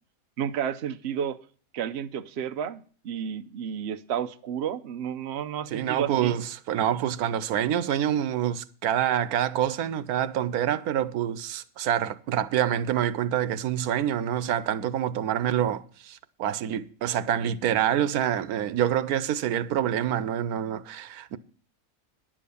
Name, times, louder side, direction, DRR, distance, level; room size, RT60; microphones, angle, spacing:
voice 1, 0.4-1.4 1.7-6.4, right 8 dB, 55° right, 0.9 m, -31 dB
voice 2, 5.7-21.4, right 10 dB, 90° right, 1.2 m, -26 dB
10.5 x 7.5 x 6.9 m
omnidirectional pair, 1.5 m